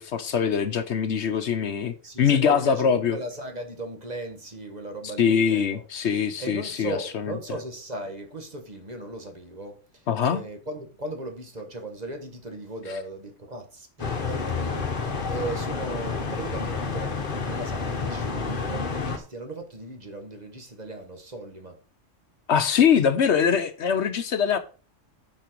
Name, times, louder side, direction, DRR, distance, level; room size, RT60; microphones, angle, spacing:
voice 1, 0.0-3.2 5.2-7.3 10.1-10.4 22.5-24.6, left 7 dB, 65° left, 1.0 m, -23 dB
voice 2, 2.0-5.8 6.4-21.8, right 2 dB, 35° right, 1.4 m, -37 dB
sound 1, 14.0-19.2, left 4 dB, 45° left, 1.3 m, -29 dB
8.8 x 5.8 x 4.6 m
omnidirectional pair, 1.3 m